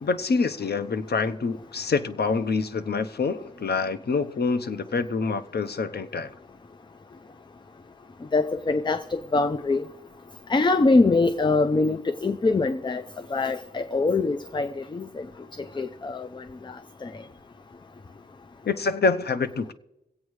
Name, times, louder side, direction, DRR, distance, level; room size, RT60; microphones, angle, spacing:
voice 1, 0.0-6.3 18.6-19.7, left 4 dB, 65° left, 0.8 m, -26 dB
voice 2, 8.3-9.8 10.5-13.0 13.3-15.3 15.8-17.1, left 3 dB, 25° left, 0.5 m, -24 dB
24.5 x 8.4 x 3.2 m
wide cardioid pair, 140°, 18 cm